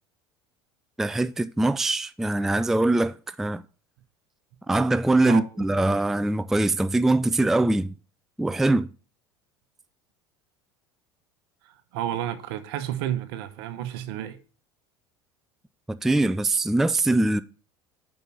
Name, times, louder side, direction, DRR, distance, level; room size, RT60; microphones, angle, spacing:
voice 1, 1.0-3.6 4.7-7.9 8.4-8.9 15.9-17.4, right 2 dB, 5° right, 0.3 m, -22 dB
voice 2, 11.6-14.4, right 11 dB, 65° right, 0.9 m, -31 dB
5.4 x 5.3 x 6.1 m
hypercardioid pair, 75°, 14 cm